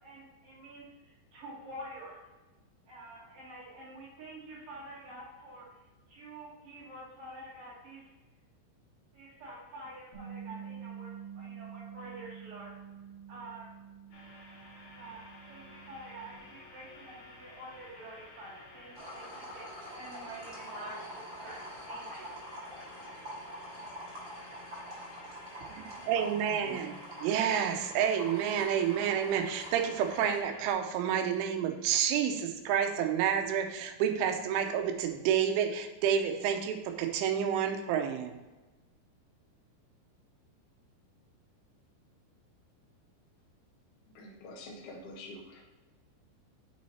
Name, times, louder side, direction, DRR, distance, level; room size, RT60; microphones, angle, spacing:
voice 1, 0.0-2.2 2.9-5.8 6.1-8.1 9.1-12.7 13.3-13.8 14.9-22.3, right 1 dB, 55° right, -9 dB, 4.3 m, -48 dB
Bass guitar, 10.1-16.4, right 8 dB, 25° left, 0.5 m, -47 dB
sound 1, 14.1-30.7, left 2 dB, 50° left, 3.6 m, -52 dB
sound 2, 18.9-30.4, equal, 30° right, 3.0 m, -45 dB
voice 2, 25.8-38.3, right 8 dB, 90° right, 6 dB, 3.3 m, -29 dB
voice 3, 44.1-45.6, left 2 dB, 75° left, -2 dB, 1.3 m, -46 dB
7.7 x 6.3 x 4.2 m, 1.2 s
omnidirectional pair, 5.4 m